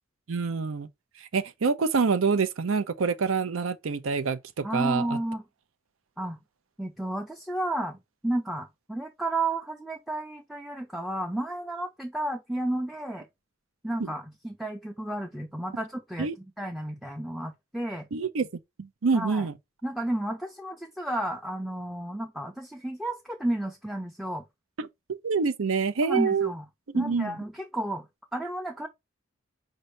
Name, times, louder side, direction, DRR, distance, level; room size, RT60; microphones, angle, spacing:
voice 1, 0.3-0.9 1.2-5.2 14.0-14.1 16.2-16.4 18.1-18.5 18.8-19.5 24.8-26.5 26.9-27.3, right 5 dB, 85° right, 0.6 m, -26 dB
voice 2, 4.6-5.4 6.2-6.4 6.8-8.0 8.2-13.3 13.8-16.3 16.6-18.1 19.1-19.5 19.8-24.4 26.0-26.6 26.9-28.1 28.3-28.9, right 1 dB, ahead, 0.5 m, -32 dB
5.2 x 2.7 x 3.2 m
head